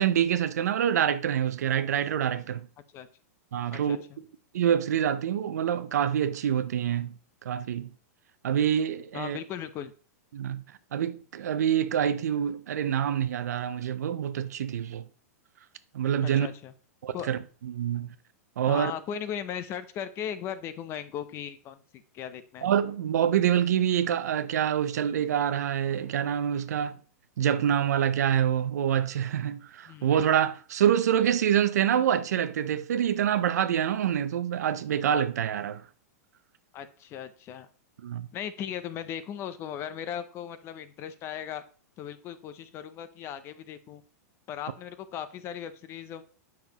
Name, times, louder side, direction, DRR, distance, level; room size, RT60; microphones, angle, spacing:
voice 1, 0.0-2.6 3.5-4.0 4.5-7.1 7.4-7.9 8.4-9.4 10.3-10.6 10.9-15.0 15.9-16.5 17.0-17.4 17.7-18.1 18.6-18.9 22.6-27.0 27.4-35.8 38.0-38.3, right 9 dB, 80° right, 0.6 m, -26 dB
voice 2, 3.7-4.2 8.4-8.7 9.1-9.9 16.2-16.7 17.1-17.3 18.7-22.7 29.9-30.1 36.7-37.7 38.3-41.6 42.0-44.0 44.5-46.2, left 9 dB, 30° left, 0.6 m, -37 dB
7.1 x 5.8 x 2.9 m
hypercardioid pair, 140°, 9 cm